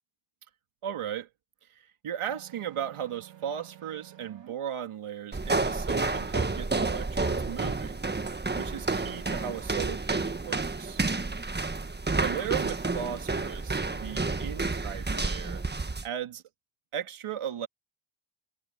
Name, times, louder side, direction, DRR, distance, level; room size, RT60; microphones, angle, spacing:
voice 1, 0.8-1.3 1.6-8.0 8.5-11.0 12.2-15.6 16.0-16.4 16.9-17.7, right 9 dB, 85° right, 2.8 m, -36 dB
sound 1, 2.3-4.5, right 11 dB, 60° right, 2.5 m, -51 dB
sound 2, 5.3-16.1, right 3 dB, 20° right, 1.5 m, -30 dB
cardioid pair, 80°, 49 cm